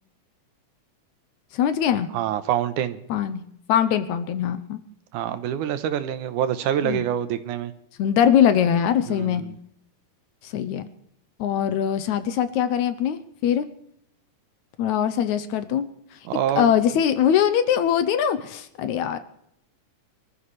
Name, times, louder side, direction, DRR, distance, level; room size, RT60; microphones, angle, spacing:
voice 1, 1.5-2.1 3.1-3.4 3.7-4.8 6.8-7.0 8.0-9.4 10.4-10.9 11.4-13.7 14.8-15.9 16.6-19.2, left 9 dB, 75° left, 11 dB, 2.0 m, -22 dB
voice 2, 2.1-3.0 5.1-7.7 9.1-9.6 16.3-16.7, right 10 dB, 75° right, 11 dB, 2.4 m, -26 dB
25.5 x 14.0 x 3.3 m, 0.72 s
omnidirectional pair, 3.7 m